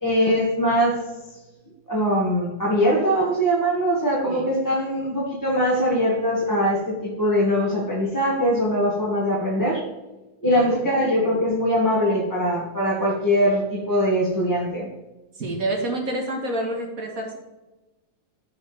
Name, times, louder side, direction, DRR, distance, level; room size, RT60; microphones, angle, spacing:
voice 1, 0.0-1.0 1.9-9.8 10.4-14.9, equal, 10° left, -6 dB, 2.0 m, -22 dB
voice 2, 10.5-10.9 15.4-17.4, right 1 dB, 50° right, 1 dB, 2.1 m, -28 dB
15.0 x 5.5 x 3.5 m, 1.1 s
omnidirectional pair, 2.1 m